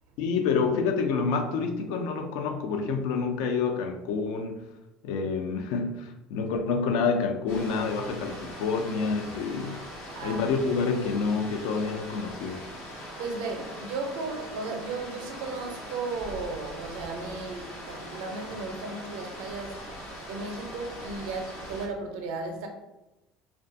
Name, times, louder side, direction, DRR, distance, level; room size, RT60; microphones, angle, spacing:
voice 1, 0.2-4.6 5.0-9.8 10.2-12.6, left 5 dB, 75° left, 0.4 m, -28 dB
sound 1, 7.5-21.9, equal, 90° left, 0.8 m, -41 dB
voice 2, 10.2-10.5 13.2-19.8 20.3-22.7, right 3 dB, 75° right, 0.5 m, -35 dB
2.4 x 2.2 x 2.6 m
hypercardioid pair, 85°, 0 cm